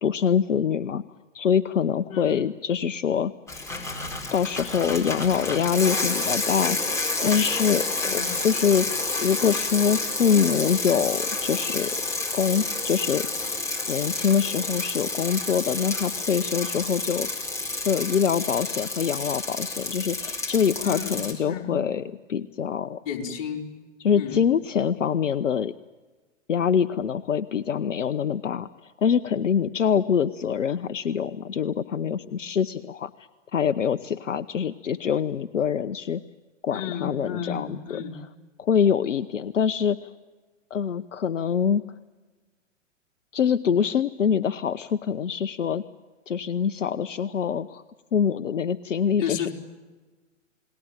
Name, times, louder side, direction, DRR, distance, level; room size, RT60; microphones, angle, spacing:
voice 1, 0.0-1.0 1.3-3.3 4.3-8.9 9.2-11.9 12.3-13.3 13.9-17.3 17.9-22.0 22.3-23.0 24.0-25.7 26.5-33.1 33.5-36.2 36.6-38.0 38.6-40.1 40.7-41.8 43.3-45.8 46.3-47.8 48.1-49.5, left 7 dB, 75° left, 12 dB, 0.9 m, -24 dB
voice 2, 2.1-2.4 8.0-8.3 20.8-21.8 23.0-23.7 24.1-24.5 36.7-38.2 49.2-49.5, left 7 dB, 40° left, 1 dB, 4.2 m, -32 dB
Bicycle, 3.5-21.3, left 2 dB, 5° left, 4.6 m, -29 dB
29.0 x 20.0 x 8.9 m, 1.3 s
figure-of-eight pair, 115°, 38 cm